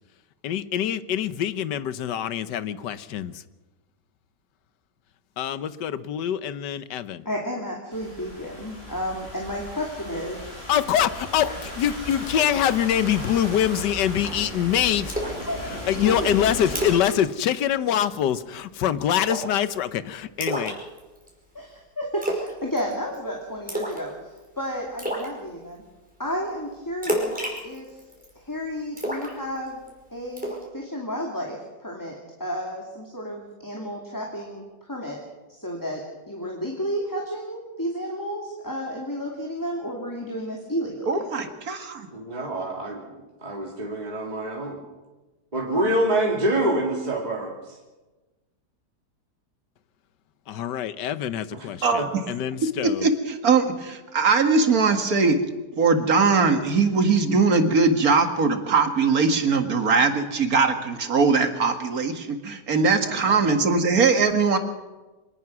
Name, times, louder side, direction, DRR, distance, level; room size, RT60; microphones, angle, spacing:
voice 1, 0.4-3.3 5.4-7.3 10.7-15.1 15.9-20.8 50.5-53.1, left 10 dB, 90° left, 14 dB, 1.5 m, -25 dB
voice 2, 7.2-10.5 11.4-11.5 15.5-15.6 16.0-16.3 21.5-24.1 24.6-25.8 26.2-27.4 27.6-28.0 28.4-29.8 30.1-35.2 35.5-36.0 36.3-41.2, equal, 10° left, -1 dB, 2.6 m, -32 dB
Thunderstorm / Rain, 7.9-16.9, equal, 35° left, 7.0 m, -36 dB
Splash splatter, 15.1-15.4 15.8-15.9 16.3-16.4 16.7-17.2 17.4-17.6 17.9-18.3 19.2-19.6 20.4-21.3 22.2-22.5 22.8-23.2 23.7-24.1 24.4-24.5 25.0-25.3 27.0-28.3 29.0-29.9 30.4-30.6, right 1 dB, 5° right, 5.4 m, -29 dB
voice 3, 41.1-42.1 51.8-52.0 52.8-55.4 55.8-64.6, right 4 dB, 60° right, 6 dB, 2.2 m, -21 dB
voice 4, 42.1-43.0 43.4-44.8 45.5-47.8 51.5-51.7 52.0-52.1 63.3-63.4, right 1 dB, 25° right, -2 dB, 2.7 m, -26 dB
25.0 x 19.0 x 6.1 m, 1.2 s
omnidirectional pair, 1.8 m